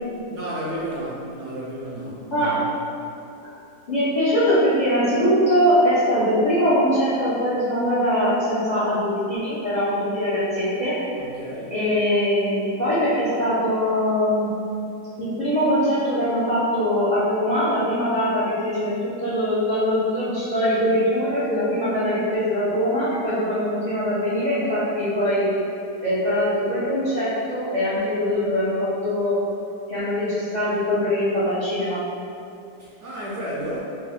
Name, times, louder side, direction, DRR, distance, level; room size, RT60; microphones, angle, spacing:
voice 1, 0.3-2.6 11.2-11.7 32.8-33.8, right 1 dB, 65° right, -7 dB, 0.8 m, -32 dB
voice 2, 3.9-10.9 11.7-14.5 15.2-25.5 26.0-29.3 29.9-32.0, equal, 40° left, -11 dB, 0.7 m, -22 dB
3.3 x 2.6 x 3.4 m, 2.6 s
omnidirectional pair, 1.6 m